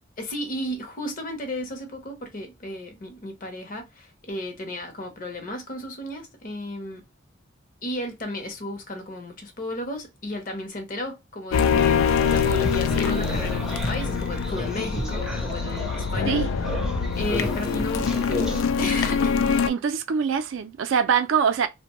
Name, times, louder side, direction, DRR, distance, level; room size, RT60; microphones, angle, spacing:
voice 1, 0.2-7.0 7.8-16.4 17.1-19.3, left 1 dB, 45° left, 0.7 m, -34 dB
sound 1, 11.5-19.7, left 6 dB, 85° left, 0.3 m, -24 dB
sound 2, 12.2-18.6, left 1 dB, ahead, 0.5 m, -33 dB
voice 2, 19.7-21.7, right 7 dB, 70° right, 0.4 m, -23 dB
2.5 x 2.1 x 2.8 m
head